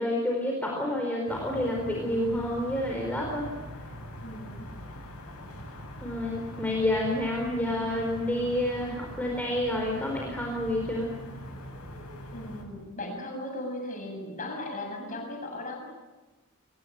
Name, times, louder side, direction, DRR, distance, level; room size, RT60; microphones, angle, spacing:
voice 1, 0.0-3.5 6.0-11.1, left 1 dB, 5° left, -1 dB, 4.6 m, -29 dB
sound 1, 1.3-12.6, equal, 75° left, 7.9 m, -42 dB
voice 2, 4.2-4.7 12.3-15.9, left 1 dB, 35° left, 2 dB, 7.5 m, -37 dB
24.5 x 21.5 x 9.1 m, 1.2 s
head